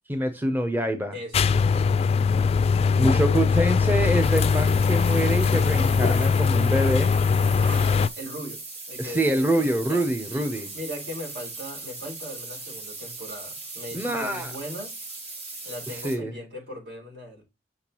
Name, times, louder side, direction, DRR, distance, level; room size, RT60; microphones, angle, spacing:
voice 1, 0.1-1.1 3.0-7.1 9.0-10.7 13.9-14.5 16.0-16.3, right 1 dB, 10° right, 0.7 m, -25 dB
voice 2, 1.1-2.1 2.9-3.7 7.6-14.9 15.6-17.4, equal, 70° right, 4.8 m, -39 dB
sound 1, 1.3-8.1, left 5 dB, 35° left, 0.3 m, -21 dB
sound 2, 3.7-16.2, right 3 dB, 40° right, 3.7 m, -39 dB
6.7 x 5.8 x 2.9 m
head